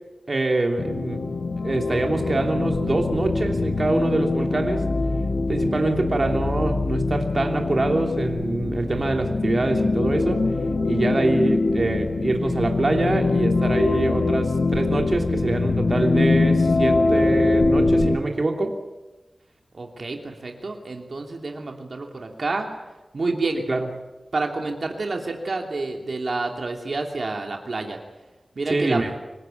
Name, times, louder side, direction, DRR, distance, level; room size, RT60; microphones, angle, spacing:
voice 1, 0.3-1.3 1.6-4.8 5.5-10.5 10.8-18.8 23.7-23.9 28.7-29.1, right 2 dB, 50° right, 3 dB, 2.9 m, -24 dB
sound 1, 0.8-18.2, left 3 dB, 80° left, 1.7 m, -23 dB
voice 2, 19.7-22.7 23.1-23.6 24.3-28.0 28.5-29.0, right 3 dB, 70° right, 2 dB, 2.9 m, -29 dB
26.5 x 17.5 x 9.0 m, 1.1 s
wide cardioid pair, 70°, 0 cm